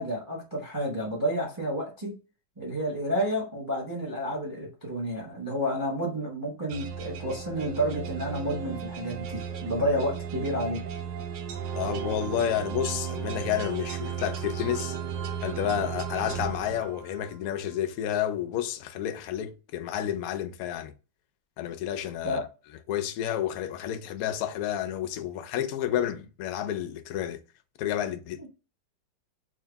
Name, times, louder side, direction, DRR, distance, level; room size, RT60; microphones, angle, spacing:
voice 1, 0.0-2.1 2.6-11.0 22.2-22.5 28.4-28.5, equal, 15° right, 0.9 m, -30 dB
sound 1, 6.7-17.4, right 7 dB, 80° right, 1.3 m, -35 dB
voice 2, 11.7-15.0 15.4-20.9 21.6-22.4 22.9-27.4 27.8-28.4, left 10 dB, 70° left, 0.8 m, -30 dB
3.8 x 2.8 x 3.4 m
omnidirectional pair, 2.0 m